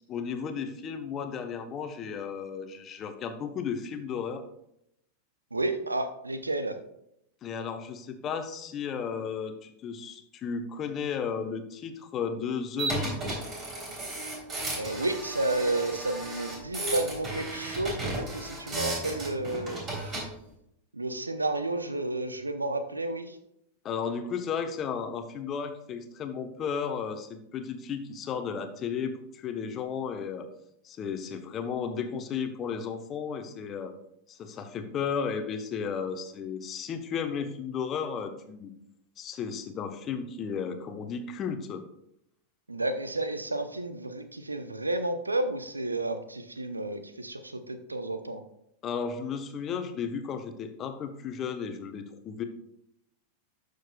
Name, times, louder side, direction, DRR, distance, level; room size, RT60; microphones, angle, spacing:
voice 1, 0.1-4.5 7.4-13.3 23.8-30.5 30.8-33.9 34.3-38.7 39.2-41.8 48.8-52.4, left 6 dB, 30° left, 7 dB, 0.9 m, -34 dB
voice 2, 5.5-6.8 14.8-19.8 20.9-23.4 42.7-48.4, right 2 dB, 80° right, 10 dB, 0.6 m, -31 dB
sound 1, 12.8-20.3, right 2 dB, 30° right, 3.2 m, -34 dB
12.0 x 6.4 x 2.3 m, 0.77 s
figure-of-eight pair, 90°, 0 cm